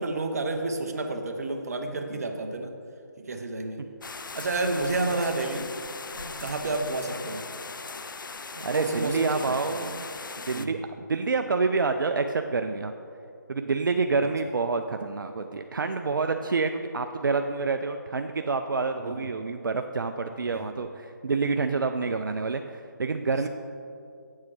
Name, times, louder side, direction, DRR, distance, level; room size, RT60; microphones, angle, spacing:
voice 1, 0.0-2.7 3.2-3.9 4.3-5.7 6.1-7.4 8.5-9.7 10.5-10.8 19.0-19.3 20.5-20.7, right 2 dB, 50° right, 5 dB, 0.7 m, -30 dB
sound 1, 4.0-10.7, left 4 dB, 80° left, 0.4 m, -39 dB
voice 2, 8.6-10.1 10.5-12.9 13.5-23.5, right 4 dB, 80° right, 6 dB, 0.4 m, -28 dB
8.4 x 7.3 x 3.2 m, 2.5 s
figure-of-eight pair, 155°, 11 cm